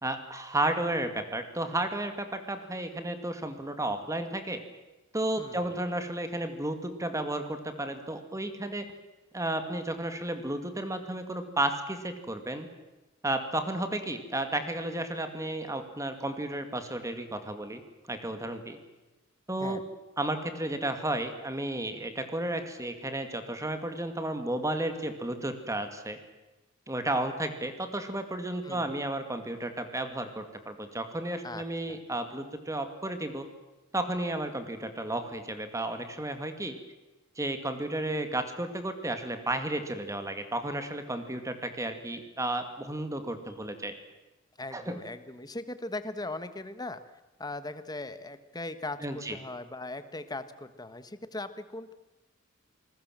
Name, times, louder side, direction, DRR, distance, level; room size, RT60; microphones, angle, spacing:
voice 1, 0.0-4.6 5.1-8.9 9.3-12.7 13.2-17.8 18.1-18.8 19.5-19.8 20.2-26.2 26.9-33.5 33.9-36.8 37.4-44.0 44.7-45.0 49.0-49.4, right 1 dB, 15° right, 8 dB, 2.1 m, -33 dB
voice 2, 5.4-5.7 19.6-19.8 28.6-28.9 31.4-32.0 44.6-47.0 47.4-51.9, left 2 dB, 20° left, 11 dB, 1.5 m, -39 dB
27.5 x 20.5 x 7.6 m, 1.1 s
head